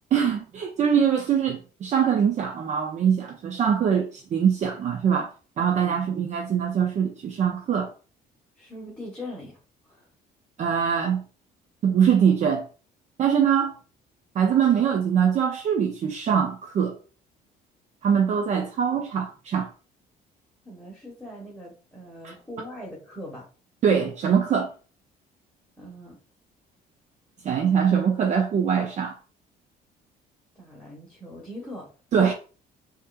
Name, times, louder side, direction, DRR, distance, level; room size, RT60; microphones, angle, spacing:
voice 1, 0.1-7.9 10.6-11.2 11.8-12.7 13.2-13.8 14.4-17.0 18.0-19.7 22.2-22.3 23.8-24.7 27.4-29.2 32.1-32.3, right 7 dB, 45° right, 0.5 m, -23 dB
voice 2, 8.6-9.6 9.9-10.1 20.6-23.4 25.8-26.1 30.5-31.9, left 1 dB, 5° left, 1.3 m, -41 dB
5.4 x 2.6 x 2.3 m
cardioid pair, 110°, 17 cm